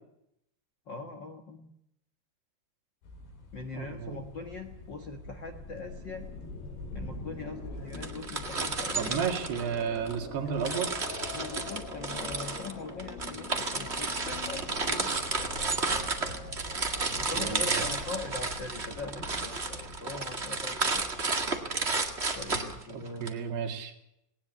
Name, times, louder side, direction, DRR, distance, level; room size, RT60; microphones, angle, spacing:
voice 1, 0.9-1.7 3.5-6.3 6.9-9.2 10.4-10.5 11.3-15.1 17.2-21.0 22.3-23.5, left 3 dB, 65° left, 5 dB, 1.1 m, -41 dB
sound 1, 3.0-22.8, left 2 dB, 85° left, 6.7 m, -46 dB
voice 2, 3.7-4.2 9.0-11.0 17.1-17.9 22.9-23.9, right 7 dB, 80° right, 4 dB, 4.4 m, -33 dB
sound 2, 4.2-17.6, left 4 dB, 40° left, 2.8 m, -46 dB
sound 3, 7.9-10.2 10.6-23.3, right 3 dB, 45° right, 0.8 m, -32 dB
19.0 x 19.0 x 8.3 m, 0.79 s
omnidirectional pair, 4.7 m